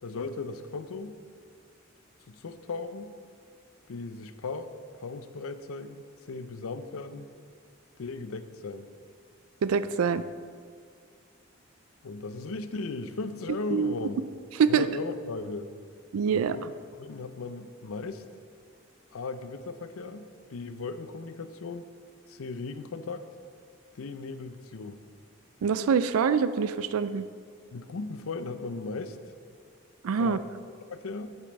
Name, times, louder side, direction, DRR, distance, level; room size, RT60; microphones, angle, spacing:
voice 1, 0.0-1.2 2.3-3.1 3.9-4.7 5.0-7.3 8.0-8.9 12.0-14.2 14.7-15.7 16.3-16.7 17.0-18.2 19.1-21.9 22.3-23.3 24.0-25.0 27.7-29.2 30.2-30.5 30.9-31.3, left 3 dB, 80° left, 11 dB, 0.5 m, -37 dB
voice 2, 9.6-10.2 13.7-13.9 14.6-14.8 16.1-16.6 25.6-27.3 30.0-30.4, right 6 dB, 80° right, 14 dB, 0.4 m, -25 dB
8.1 x 5.3 x 6.9 m, 2.1 s
head